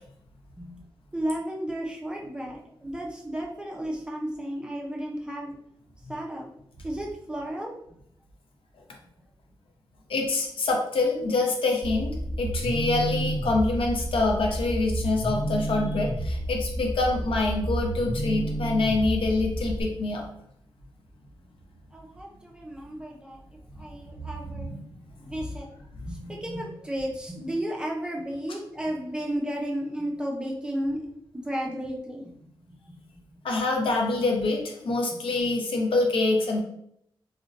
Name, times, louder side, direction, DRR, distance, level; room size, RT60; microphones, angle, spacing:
voice 1, 1.1-5.6 6.1-6.5 6.8-7.7 21.9-23.4 23.8-24.7 25.2-25.7 26.0-31.0 31.3-32.3 32.7-33.4 35.1-35.2, right 1 dB, 10° right, -2 dB, 0.5 m, -33 dB
voice 2, 10.1-20.2 24.5-24.9 26.0-26.1 33.4-36.6, left 2 dB, 80° left, 1 dB, 0.6 m, -26 dB
sound 1, 11.8-19.8, right 1 dB, 50° left, 0.9 m, -30 dB
2.5 x 2.1 x 3.9 m, 0.73 s
wide cardioid pair, 175°, 9 cm